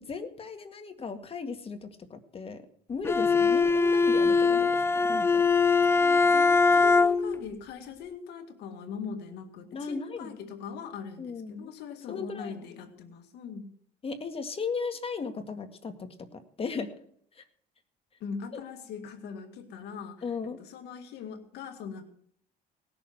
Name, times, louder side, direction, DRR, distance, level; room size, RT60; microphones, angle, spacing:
voice 1, 0.1-2.6 2.9-5.4 9.7-10.3 11.2-11.8 12.1-12.5 14.0-16.9 17.3-17.4 18.5-18.6 20.2-20.6, left 5 dB, 35° left, 8 dB, 2.0 m, -36 dB
Bowed string instrument, 3.0-7.4, left 4 dB, 15° left, 0.5 m, -22 dB
voice 2, 5.9-13.8 18.2-22.1, left 6 dB, 80° left, 6 dB, 2.1 m, -41 dB
18.5 x 6.9 x 7.9 m, 0.62 s
cardioid pair, 110°, 17 cm